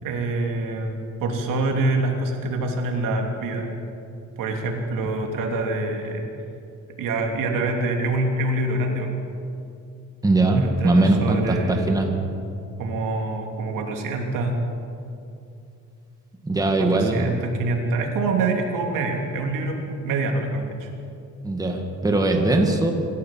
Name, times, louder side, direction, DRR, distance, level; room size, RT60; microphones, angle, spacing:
voice 1, 0.0-3.7 4.4-6.3 7.0-9.1 10.5-11.9 12.8-14.5 16.8-20.9, right 2 dB, 90° right, 2 dB, 3.2 m, -26 dB
voice 2, 10.2-12.1 16.4-17.4 21.4-22.9, right 2 dB, 10° right, 2 dB, 2.0 m, -20 dB
26.0 x 14.5 x 7.6 m, 2.6 s
cardioid pair, 155°, 31 cm